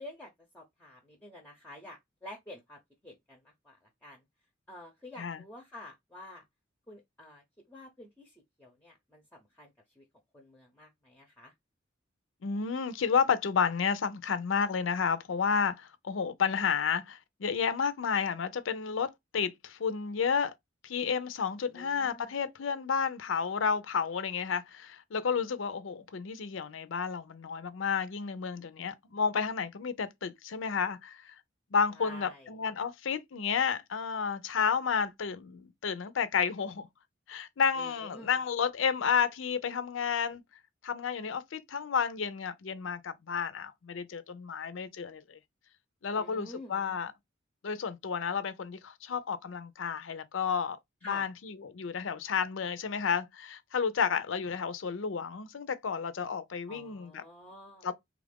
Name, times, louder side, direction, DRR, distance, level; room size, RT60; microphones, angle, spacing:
voice 1, 0.0-4.2 4.7-6.4 6.9-9.7 10.0-10.1 10.3-11.5 21.7-22.3 25.3-25.5 32.0-32.5 37.8-38.3 46.1-46.7 51.0-51.3 56.7-57.9, left 1 dB, 10° left, 0.6 m, -49 dB
voice 2, 12.4-20.5 20.8-31.3 31.7-36.9 37.3-40.4 40.8-45.4 46.0-47.1 47.6-50.8 51.1-57.2 57.8-57.9, left 6 dB, 85° left, 0.5 m, -31 dB
3.4 x 2.4 x 3.4 m
head